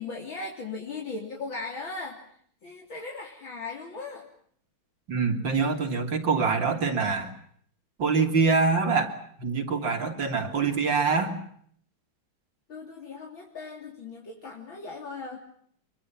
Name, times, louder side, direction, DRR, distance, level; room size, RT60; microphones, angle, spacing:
voice 1, 0.0-2.2 2.6-4.3 12.7-15.4, left 3 dB, 65° left, 0 dB, 4.2 m, -38 dB
voice 2, 5.1-7.3 8.0-9.1 9.4-11.4, right 4 dB, 60° right, 6 dB, 3.9 m, -25 dB
26.5 x 24.0 x 7.5 m, 0.63 s
omnidirectional pair, 2.3 m